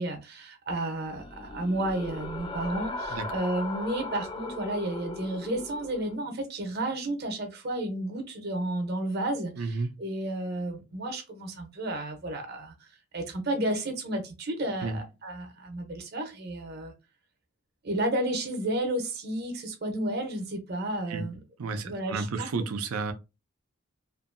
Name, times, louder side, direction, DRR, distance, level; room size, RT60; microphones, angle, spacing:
voice 1, 0.0-12.7 13.1-16.9 17.8-21.4 21.8-22.5, right 1 dB, 50° right, 0.7 m, -32 dB
sound 1, 1.0-6.1, left 2 dB, 20° left, 0.3 m, -38 dB
voice 2, 9.6-9.9 14.8-15.1 21.1-21.3 21.6-23.1, right 3 dB, 90° right, 0.5 m, -32 dB
2.7 x 2.5 x 2.5 m
head